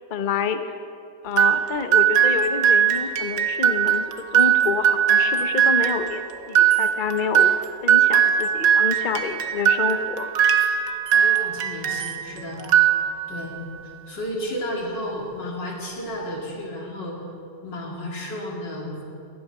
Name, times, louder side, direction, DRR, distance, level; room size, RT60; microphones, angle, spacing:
voice 1, 0.1-0.7 1.2-4.1 4.3-7.5 7.8-10.3, left 6 dB, 45° left, 8 dB, 0.6 m, -28 dB
sound 1, 1.4-12.2 12.6-13.5, right 9 dB, 60° right, 1.2 m, -20 dB
voice 2, 11.1-12.7 13.3-17.2 17.6-19.0, equal, 85° left, -2 dB, 3.5 m, -32 dB
18.0 x 12.0 x 6.1 m, 2.6 s
omnidirectional pair, 1.9 m